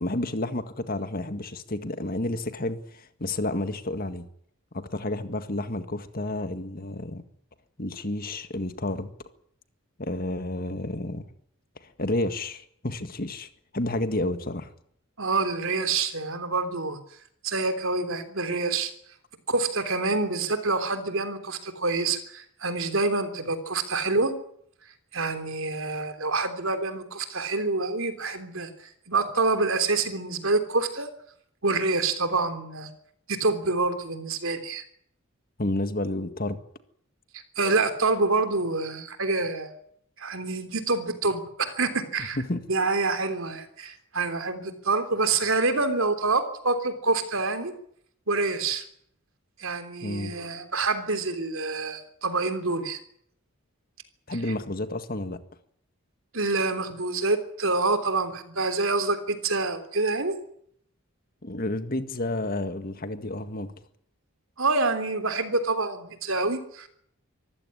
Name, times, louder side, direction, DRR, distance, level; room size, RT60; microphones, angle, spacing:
voice 1, 0.0-4.3 4.7-7.2 7.8-9.1 10.0-11.2 12.0-13.5 13.7-14.7 35.6-36.6 42.3-42.6 50.0-50.3 54.3-55.4 61.4-63.7, left 1 dB, 45° left, 10 dB, 1.8 m, -30 dB
voice 2, 15.2-17.0 17.4-18.9 19.5-24.4 25.1-31.1 31.6-32.9 33.3-34.8 37.6-39.7 40.2-42.4 42.7-47.7 48.3-48.8 49.6-53.0 54.3-54.4 56.3-60.4 64.6-66.9, right 3 dB, 65° right, 9 dB, 3.4 m, -27 dB
24.5 x 15.5 x 10.0 m, 0.68 s
head